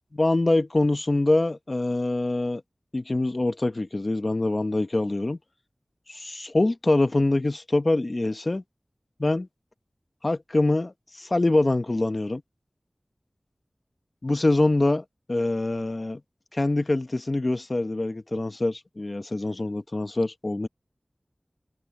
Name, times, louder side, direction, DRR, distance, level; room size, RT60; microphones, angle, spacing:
voice 1, 0.1-2.6 2.9-5.4 6.1-8.6 9.2-9.5 10.2-12.4 14.2-16.2 16.5-20.7, left 2 dB, 45° left, 0.8 m, -24 dB
open air
wide cardioid pair, 65°, 0 cm